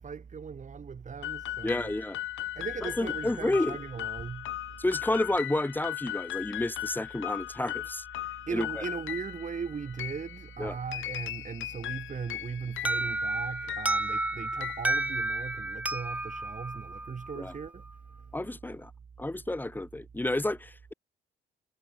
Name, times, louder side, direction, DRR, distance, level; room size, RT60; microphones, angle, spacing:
voice 1, 0.0-1.9 2.5-4.8 8.5-17.8 18.2-18.3, right 6 dB, 40° right, 2.4 m, -38 dB
sound 1, 1.2-15.7, left 14 dB, 75° left, 1.2 m, -38 dB
voice 2, 1.6-2.2 2.8-3.8 4.8-8.0 8.5-8.7 10.6-10.8 17.4-17.5 18.3-18.9 19.2-20.9, left 2 dB, 10° left, 1.2 m, -30 dB
Alarm, 12.9-17.6, right 2 dB, 5° right, 0.5 m, -31 dB
cardioid pair, 90°, 20 cm